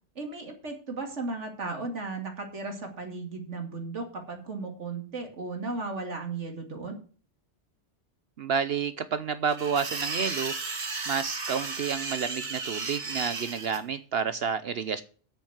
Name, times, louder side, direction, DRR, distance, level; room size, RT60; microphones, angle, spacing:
voice 1, 0.2-7.0, right 3 dB, 80° right, 4 dB, 2.7 m, -35 dB
voice 2, 8.4-10.5 11.1-15.0, right 6 dB, 60° right, 13 dB, 0.9 m, -30 dB
sound 1, 9.5-13.8, right 4 dB, 40° right, 1.4 m, -34 dB
8.4 x 7.0 x 8.0 m, 0.41 s
omnidirectional pair, 1.2 m